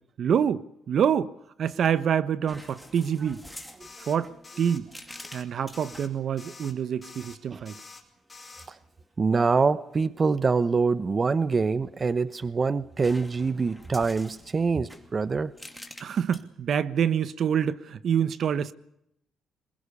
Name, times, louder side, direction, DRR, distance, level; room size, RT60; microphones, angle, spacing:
voice 1, 0.2-1.3 1.6-3.4 4.0-4.3 4.6-4.9 5.3-7.8 16.0-18.7, right 8 dB, 60° right, 1.1 m, -26 dB
sound 1, 2.5-6.2 7.1-7.5 11.7-12.5 13.0-16.4, equal, ahead, 2.9 m, -48 dB
sound 2, 3.8-4.2 4.4-4.8 5.1-5.4 5.7-6.1 6.4-6.7 7.0-7.4 7.6-8.0 8.3-8.7, left 4 dB, 25° left, 4.9 m, -47 dB
voice 2, 9.2-15.5, right 4 dB, 35° right, 0.9 m, -25 dB
22.5 x 21.5 x 6.8 m
cardioid pair, 95°, 0 cm